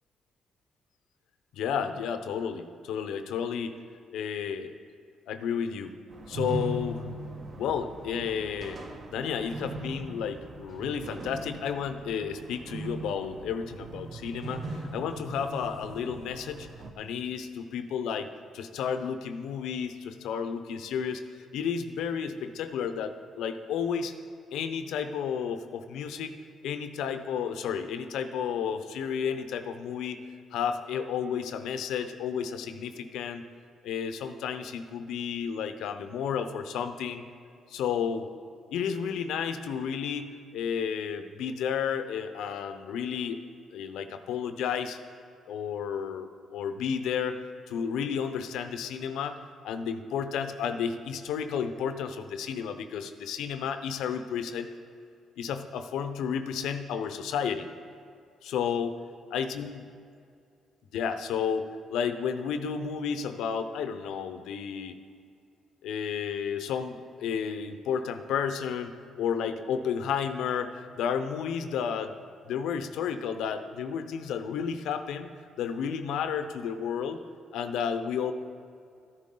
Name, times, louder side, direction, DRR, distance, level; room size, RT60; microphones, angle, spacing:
voice 1, 1.5-3.8 4.1-4.7 5.3-5.9 6.3-7.1 7.6-8.8 9.1-16.7 17.0-21.2 21.5-24.1 24.5-26.4 26.6-30.2 30.5-33.5 33.8-37.2 37.7-38.3 38.7-43.4 43.7-45.0 45.5-49.4 49.6-54.7 55.4-57.7 58.4-58.9 59.3-59.9 60.9-65.0 65.8-72.1 72.5-75.3 75.6-77.2 77.5-78.3, left 7 dB, 85° left, 9 dB, 0.6 m, -32 dB
sound 1, 6.1-16.9, right 2 dB, 50° right, 1.1 m, -39 dB
12.5 x 11.0 x 3.8 m, 2.4 s
cardioid pair, 90°, 0 cm